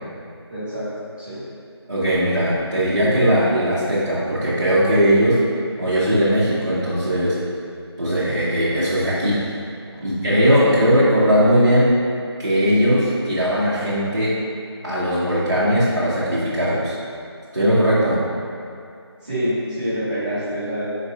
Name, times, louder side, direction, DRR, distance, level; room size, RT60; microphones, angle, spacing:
voice 1, 0.5-1.4 9.9-10.0 19.2-20.9, equal, 20° right, -14 dB, 1.2 m, -27 dB
voice 2, 1.9-5.4 5.8-7.4 8.0-9.5 10.0-11.9 12.4-14.3 14.8-16.9 17.5-18.2, equal, 45° right, -11 dB, 0.8 m, -19 dB
5.0 x 4.0 x 2.7 m, 2.5 s
figure-of-eight pair, 175°, 14 cm